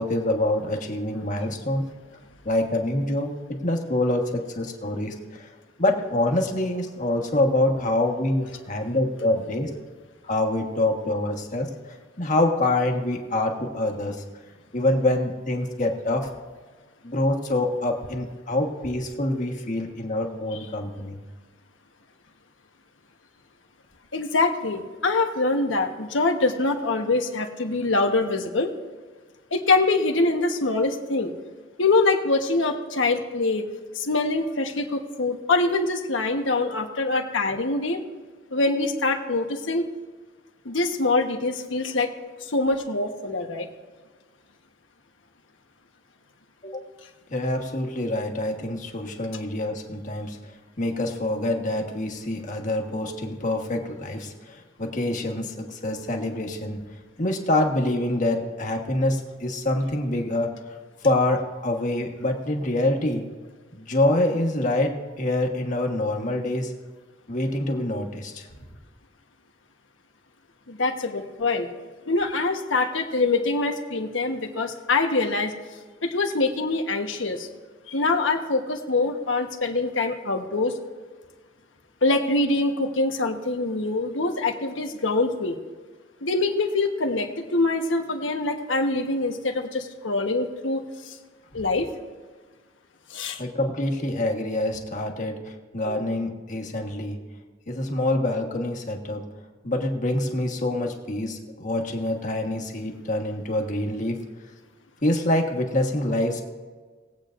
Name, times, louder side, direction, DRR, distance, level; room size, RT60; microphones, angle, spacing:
voice 1, 0.0-1.9 2.4-5.5 5.8-9.7 10.2-14.2 14.7-16.3 17.0-21.2 46.6-46.9 47.3-50.4 50.8-56.8 57.2-60.5 61.0-63.2 63.7-66.7 67.3-68.5 93.4-97.2 97.7-99.2 99.6-104.2 105.0-106.4, left 1 dB, 45° left, 2 dB, 1.4 m, -26 dB
voice 2, 24.1-28.7 29.5-31.3 31.8-33.6 33.9-38.0 38.5-39.8 40.6-42.1 42.4-43.7 70.7-71.7 72.1-75.5 76.0-77.5 77.9-80.7 82.0-85.6 86.2-91.2 91.5-91.9 93.1-93.4, left 3 dB, 85° left, 4 dB, 1.2 m, -24 dB
20.0 x 8.3 x 2.6 m, 1.4 s
head